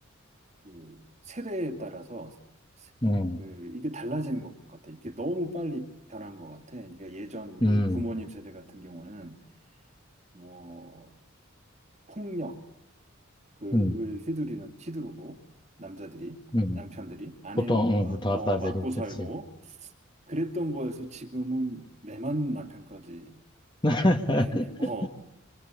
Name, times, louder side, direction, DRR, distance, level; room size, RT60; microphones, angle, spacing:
voice 1, 0.6-2.4 2.8-2.9 3.4-9.4 10.3-11.1 12.1-12.6 13.6-15.4 15.8-16.4 16.7-19.9 20.3-23.4 24.8-25.1, right 1 dB, 35° right, 7 dB, 2.4 m, -36 dB
voice 2, 3.0-3.4 7.6-8.0 13.7-14.0 16.5-16.8 17.7-18.8 19.2-19.3 23.8-24.9, left 1 dB, 20° left, 6 dB, 1.7 m, -25 dB
25.5 x 25.5 x 8.4 m, 0.80 s
head